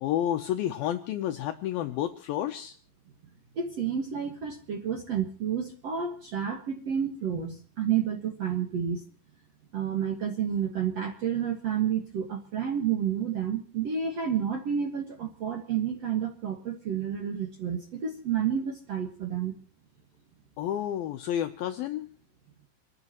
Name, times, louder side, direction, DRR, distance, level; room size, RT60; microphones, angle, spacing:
voice 1, 0.0-2.8 20.6-22.1, left 11 dB, 80° left, 6 dB, 2.1 m, -30 dB
voice 2, 3.5-9.0 9.7-19.5, right 8 dB, 75° right, 3 dB, 1.4 m, -30 dB
28.5 x 12.5 x 3.0 m, 0.39 s
omnidirectional pair, 5.3 m